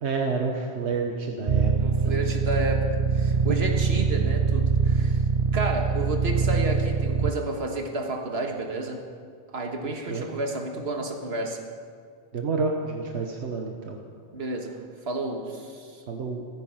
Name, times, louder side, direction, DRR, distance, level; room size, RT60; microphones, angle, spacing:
voice 1, 0.0-1.7 2.0-2.3 3.5-3.6 9.9-10.3 12.3-14.0 16.1-16.5, right 4 dB, 90° right, 2 dB, 1.4 m, -29 dB
sound 1, 1.5-7.3, right 5 dB, 50° right, 0.4 m, -23 dB
voice 2, 1.8-2.8 3.1-5.2 5.5-9.0 9.5-11.6 14.3-14.8 15.1-16.0, right 2 dB, 70° right, 2 dB, 1.9 m, -31 dB
15.5 x 14.5 x 5.7 m, 2.1 s
omnidirectional pair, 1.1 m